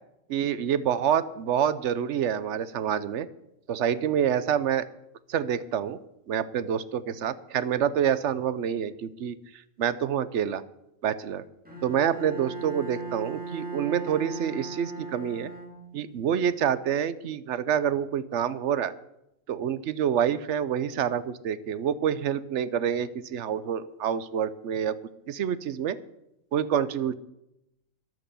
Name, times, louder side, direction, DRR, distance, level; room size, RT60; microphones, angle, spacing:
voice 1, 0.3-3.3 3.7-4.9 5.3-6.0 6.3-9.4 9.8-10.6 11.0-11.4 11.8-15.5 15.9-18.9 19.5-24.9 25.3-26.0 26.5-27.1, right 9 dB, 60° right, 15 dB, 1.0 m, -27 dB
Bowed string instrument, 11.7-16.2, right 4 dB, 5° right, 3.4 m, -38 dB
13.5 x 10.5 x 6.9 m, 0.86 s
omnidirectional pair, 1.5 m